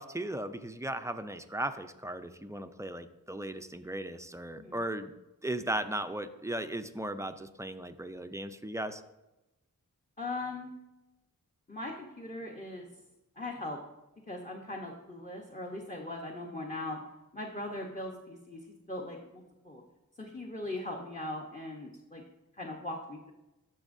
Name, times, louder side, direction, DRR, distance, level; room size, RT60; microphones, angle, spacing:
voice 1, 0.0-5.1 5.4-9.0, right 1 dB, 10° right, 9 dB, 0.5 m, -37 dB
voice 2, 10.2-10.7 11.7-12.9 13.4-13.8 14.3-17.0 17.3-19.8 20.2-22.2 22.6-23.3, left 2 dB, 20° left, 0 dB, 1.0 m, -40 dB
12.0 x 6.3 x 2.6 m, 0.99 s
wide cardioid pair, 60°, 36 cm